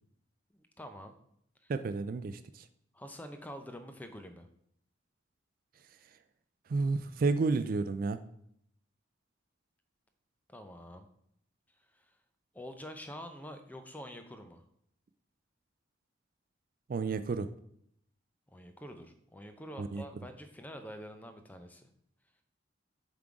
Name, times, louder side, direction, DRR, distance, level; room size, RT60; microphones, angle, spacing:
voice 1, 0.5-1.1 1.6-1.7 2.9-4.5 10.5-11.1 11.9-12.1 12.5-14.6 18.5-21.9, equal, 10° left, 7 dB, 0.5 m, -46 dB
voice 2, 1.7-2.6 6.7-8.2 16.9-17.5 19.8-20.0, right 4 dB, 45° right, 11 dB, 0.3 m, -31 dB
7.5 x 3.7 x 4.6 m, 0.71 s
head